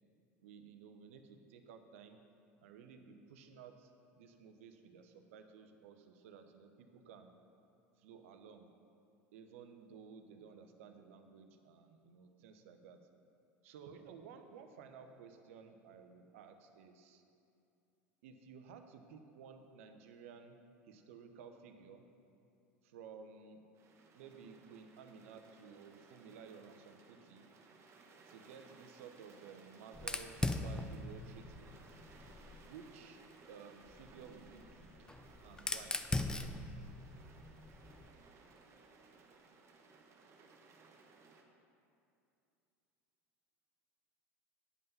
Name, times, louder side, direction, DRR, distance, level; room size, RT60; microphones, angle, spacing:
voice 1, 0.4-2.2 2.6-3.9 4.2-7.3 8.0-8.7 9.3-13.0 13.6-17.2 18.2-20.6 20.8-22.1 22.8-23.6 24.1-27.5 28.3-32.0 32.7-33.2 33.5-34.9 35.4-36.0, right 6 dB, 70° right, 6 dB, 0.8 m, -55 dB
sound 1, 23.7-41.4, right 4 dB, 40° right, 1.1 m, -61 dB
Fire, 29.9-32.7 33.9-38.1, left 2 dB, 10° left, 0.5 m, -41 dB
9.5 x 5.5 x 5.4 m, 2.6 s
hypercardioid pair, 80°, 8 cm